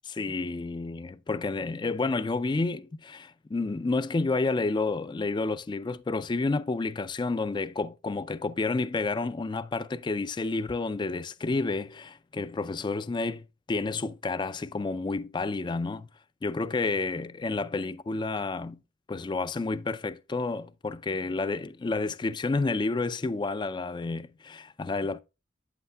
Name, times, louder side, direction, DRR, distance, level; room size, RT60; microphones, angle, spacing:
voice 1, 0.1-16.1 16.4-18.8 19.1-25.2, left 3 dB, 25° left, 0.3 m, -30 dB
8.6 x 8.1 x 2.3 m
head